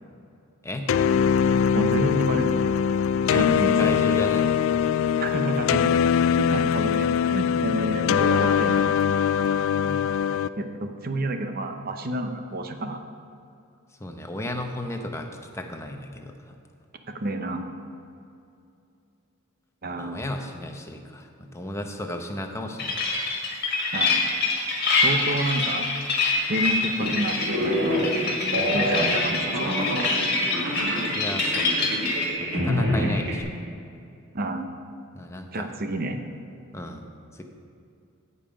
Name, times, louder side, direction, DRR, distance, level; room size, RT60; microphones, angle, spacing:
sound 1, 0.9-10.5, left 7 dB, 70° left, 0.3 m, -22 dB
voice 1, 1.7-2.7 3.2-3.9 5.2-5.9 6.4-8.9 10.6-13.0 17.1-17.7 19.8-20.2 23.9-24.3 25.0-25.9 26.5-28.1 28.7-30.1 33.0-33.1 34.3-34.7 35.5-36.2, right 1 dB, 45° right, 6 dB, 0.8 m, -29 dB
voice 2, 3.8-4.5 9.7-10.0 14.0-15.3 15.5-16.5 20.0-23.0 31.1-31.7 32.4-33.5 35.1-35.7 36.7-37.0 37.3-37.4, left 1 dB, 15° left, 4 dB, 0.8 m, -34 dB
sound 2, 22.8-32.3, left 3 dB, 50° left, 1.8 m, -25 dB
sound 3, 27.0-33.4, equal, 65° right, 2.4 m, -27 dB
15.5 x 5.5 x 5.1 m, 2.5 s
head